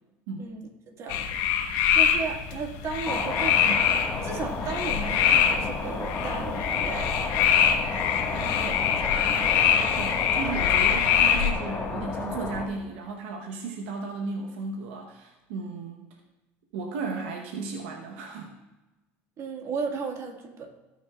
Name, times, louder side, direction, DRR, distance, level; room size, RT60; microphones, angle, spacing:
voice 1, 0.4-1.3 1.9-3.8 4.2-7.1 8.3-9.5 19.4-20.8, right 5 dB, 50° right, 2 dB, 1.7 m, -35 dB
sound 1, 1.1-11.5, left 8 dB, 75° left, 1.1 m, -24 dB
sound 2, 3.0-12.7, left 3 dB, 25° left, 1.5 m, -32 dB
voice 2, 10.0-16.0 16.7-18.5, right 4 dB, 85° right, 2 dB, 1.0 m, -35 dB
17.0 x 6.2 x 2.4 m, 1.1 s
supercardioid pair, 95°, 7 cm